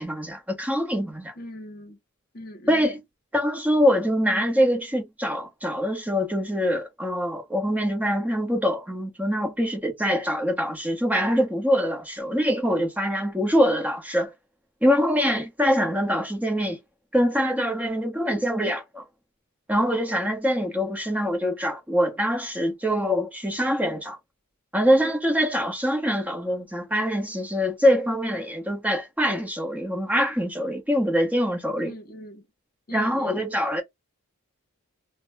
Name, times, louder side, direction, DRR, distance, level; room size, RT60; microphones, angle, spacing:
voice 1, 0.0-1.3 2.7-3.0 3.3-14.3 14.8-16.8 17.1-19.0 19.7-24.2 24.7-31.9 32.9-33.8, equal, 5° right, 1.0 m, -24 dB
voice 2, 1.3-2.0 2.3-3.0 31.8-32.5 32.9-33.5, equal, 45° left, 0.9 m, -40 dB
2.9 x 2.1 x 3.2 m
head